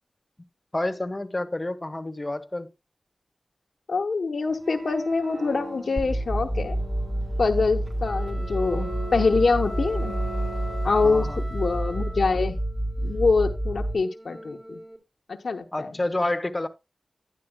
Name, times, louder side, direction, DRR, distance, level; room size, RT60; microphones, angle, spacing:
voice 1, 0.7-2.7 10.8-11.4 15.7-16.7, left 2 dB, 30° left, 1.2 m, -29 dB
voice 2, 3.9-6.8 7.4-10.1 10.8-12.6 13.0-14.8 15.3-15.9, left 4 dB, 80° left, 0.9 m, -25 dB
sound 1, 4.5-11.4, right 1 dB, 60° right, 2.2 m, -39 dB
sound 2, 6.0-15.0, right 1 dB, 10° right, 3.0 m, -29 dB
sound 3, 7.9-12.5, equal, 35° right, 6.0 m, -41 dB
12.0 x 9.8 x 2.2 m
cardioid pair, 45°, 0 cm